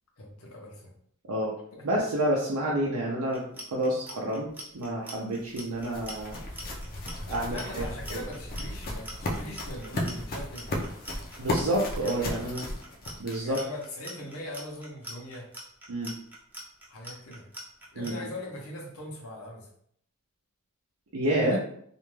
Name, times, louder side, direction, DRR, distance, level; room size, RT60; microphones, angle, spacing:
voice 1, 0.2-0.9 1.7-1.8 7.5-10.7 12.0-12.3 13.4-15.5 16.9-17.5 17.9-19.7 21.4-21.6, left 1 dB, 70° left, -1 dB, 0.7 m, -41 dB
voice 2, 1.8-3.4 3.7-4.5 4.7-6.4 7.3-7.8 8.1-8.2 9.9-10.1 11.4-12.6 13.2-13.6 15.9-16.1 18.0-18.3 21.1-21.6, right 1 dB, 75° right, -4 dB, 0.5 m, -29 dB
Clock, 3.3-18.1, equal, 10° right, 0.5 m, -43 dB
sound 1, 5.1-13.7, left 1 dB, 40° left, 0.5 m, -35 dB
2.5 x 2.2 x 3.1 m, 0.66 s
head